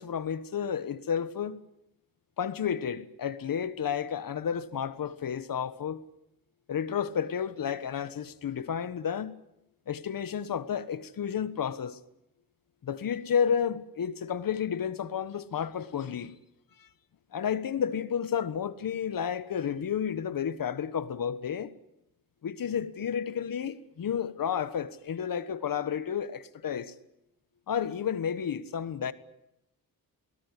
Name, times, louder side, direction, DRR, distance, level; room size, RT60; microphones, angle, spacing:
voice 1, 0.0-1.6 2.4-6.0 6.7-9.4 9.9-12.0 12.8-16.3 16.8-16.9 17.3-21.7 22.4-26.9 27.7-29.1, left 8 dB, 65° left, 1.4 m, -31 dB
22.0 x 18.0 x 9.9 m
wide cardioid pair, 120°, 36 cm